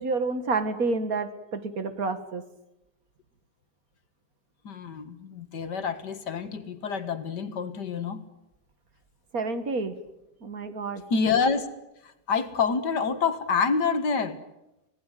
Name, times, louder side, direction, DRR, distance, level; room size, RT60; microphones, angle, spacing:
voice 1, 0.0-2.4 9.3-10.0 10.4-11.0, right 3 dB, 60° right, 10 dB, 2.2 m, -29 dB
voice 2, 4.6-8.2 11.1-11.7 12.0-14.4, left 5 dB, 85° left, 10 dB, 2.3 m, -27 dB
25.5 x 18.5 x 9.2 m, 0.91 s
omnidirectional pair, 1.8 m